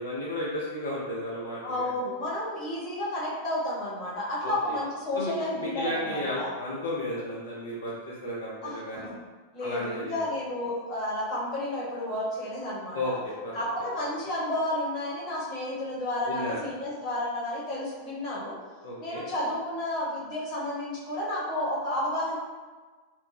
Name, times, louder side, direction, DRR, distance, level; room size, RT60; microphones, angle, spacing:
voice 1, 0.0-1.9 4.4-4.7 5.1-5.3 5.6-9.1 9.6-10.2 12.9-13.1 13.4-13.7 16.3-16.6 18.8-19.2, left 1 dB, 65° left, -6 dB, 0.5 m, -33 dB
voice 2, 1.6-6.5 8.6-9.2 9.5-13.2 13.5-18.5 19.0-22.4, left 1 dB, 35° left, -7 dB, 1.0 m, -31 dB
2.5 x 2.1 x 3.1 m, 1.4 s
figure-of-eight pair, 90°, 0 cm